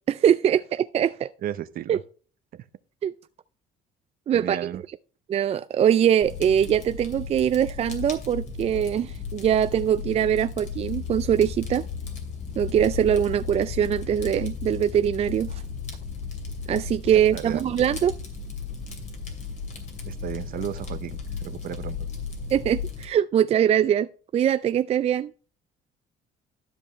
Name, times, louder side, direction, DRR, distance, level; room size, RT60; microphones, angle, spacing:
voice 1, 0.1-1.3 1.9-2.0 3.0-3.1 4.3-4.7 5.3-11.9 12.6-15.6 16.7-18.1 22.5-24.1 24.3-25.3, right 9 dB, 40° right, 0.4 m, -22 dB
voice 2, 1.4-2.0 2.5-2.7 4.3-4.8 17.1-17.6 20.1-22.1, right 11 dB, 60° right, 0.7 m, -34 dB
Fire, 6.2-23.0, left 5 dB, 45° left, 2.5 m, -35 dB
Piano, 10.7-18.4, left 8 dB, 85° left, 1.6 m, -41 dB
12.5 x 5.4 x 3.1 m
cardioid pair, 110°, 17 cm